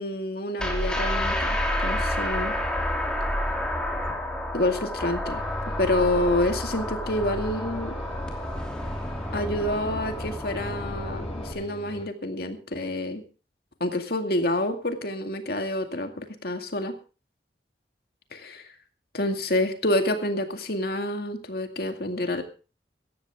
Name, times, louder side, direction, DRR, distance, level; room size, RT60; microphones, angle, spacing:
voice 1, 0.0-2.5 4.5-7.9 9.3-13.2 13.8-17.0 18.3-18.6 19.1-22.4, left 1 dB, 60° left, 6 dB, 2.1 m, -28 dB
sound 1, 0.6-11.5, left 1 dB, 5° left, 2.9 m, -29 dB
sound 2, 5.3-12.0, left 1 dB, 35° left, 6.0 m, -39 dB
17.5 x 14.0 x 3.5 m, 0.34 s
head